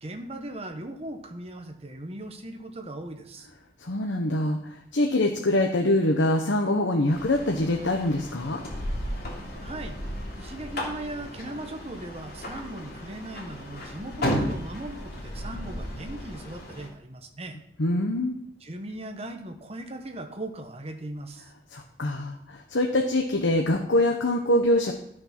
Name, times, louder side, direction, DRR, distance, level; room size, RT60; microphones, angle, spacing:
voice 1, 0.0-3.5 9.6-10.0 10.4-17.6 18.6-21.5, right 1 dB, 35° right, 5 dB, 1.3 m, -38 dB
voice 2, 3.8-8.6 17.8-18.4 21.7-24.9, left 1 dB, 80° left, 2 dB, 1.1 m, -24 dB
sound 1, 7.1-16.9, equal, 55° left, 2.9 m, -34 dB
13.0 x 6.5 x 6.0 m, 0.77 s
head